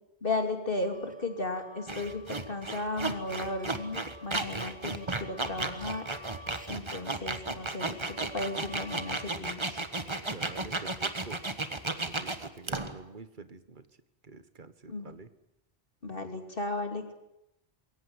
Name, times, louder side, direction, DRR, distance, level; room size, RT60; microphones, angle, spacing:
voice 1, 0.2-6.1 6.7-9.8 14.9-15.1 16.0-17.1, left 2 dB, 60° left, 5 dB, 3.0 m, -35 dB
sound 1, 0.8-9.2, right 1 dB, 10° right, 1.9 m, -50 dB
sound 2, 1.9-13.0, right 3 dB, 30° right, 1.4 m, -34 dB
voice 2, 10.3-11.4 12.1-13.8 14.2-15.3, right 4 dB, 50° right, 12 dB, 1.5 m, -47 dB
22.0 x 17.5 x 9.8 m, 0.88 s
omnidirectional pair, 1.0 m